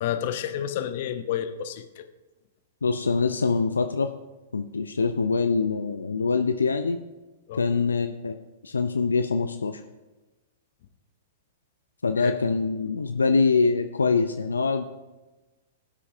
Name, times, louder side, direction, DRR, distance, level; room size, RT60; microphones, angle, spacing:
voice 1, 0.0-2.0 7.5-7.6 12.2-12.3, left 10 dB, 55° left, 9 dB, 0.9 m, -30 dB
voice 2, 2.8-4.1 4.5-7.0 7.5-8.4 8.6-9.8 12.0-14.8, left 4 dB, 85° left, 7 dB, 0.5 m, -24 dB
18.5 x 8.4 x 2.8 m, 1.1 s
figure-of-eight pair, 110°, 0 cm